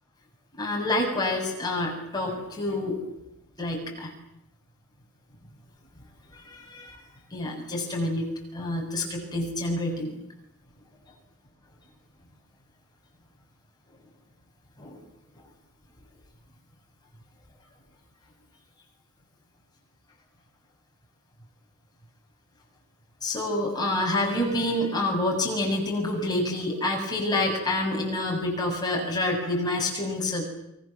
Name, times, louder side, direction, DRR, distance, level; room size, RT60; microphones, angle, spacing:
voice 1, 0.6-3.0 3.6-4.1 6.3-7.0 7.3-10.2 14.8-15.0 23.2-30.4, left 1 dB, 20° left, 0 dB, 7.3 m, -28 dB
29.5 x 24.0 x 7.4 m, 0.86 s
head